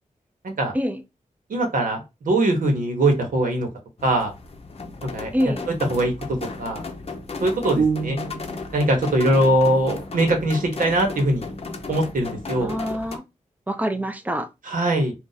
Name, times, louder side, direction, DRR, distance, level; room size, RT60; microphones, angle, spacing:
voice 1, 1.5-3.7 4.0-4.3 5.0-5.5 5.9-6.1 6.6-6.8 7.4-8.2 8.7-11.5 11.9-12.7 14.6-15.1, right 1 dB, 85° right, 1.0 m, -21 dB
sound 1, 4.0-13.2, left 4 dB, 45° left, 0.6 m, -35 dB
voice 2, 5.3-5.6 12.6-13.2 13.7-14.5, equal, 10° right, 0.5 m, -25 dB
sound 2, 7.8-8.8, right 5 dB, 55° right, 0.8 m, -25 dB
2.6 x 2.3 x 3.9 m
wide cardioid pair, 100°, 14 cm